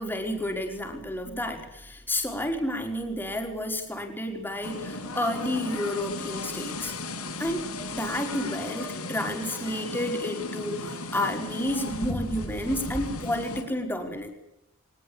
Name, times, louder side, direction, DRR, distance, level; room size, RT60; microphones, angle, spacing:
voice 1, 0.0-6.9 7.4-7.6 7.9-14.3, left 1 dB, 10° left, 3 dB, 4.9 m, -31 dB
sound 1, 4.6-13.6, left 2 dB, 80° left, 6.8 m, -35 dB
23.5 x 21.0 x 8.8 m, 0.83 s
head